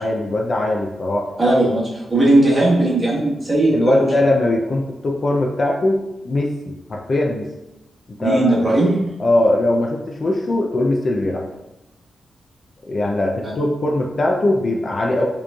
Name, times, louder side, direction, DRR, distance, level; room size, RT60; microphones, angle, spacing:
voice 1, 0.0-1.3 3.7-6.0 6.2-7.5 8.2-8.6 9.2-11.4 12.9-15.3, left 1 dB, 45° left, 0 dB, 0.5 m, -20 dB
voice 2, 1.4-4.1 8.2-9.0 13.4-13.5, right 2 dB, 20° right, -6 dB, 1.3 m, -17 dB
4.8 x 3.1 x 2.3 m, 0.95 s
wide cardioid pair, 125°, 0 cm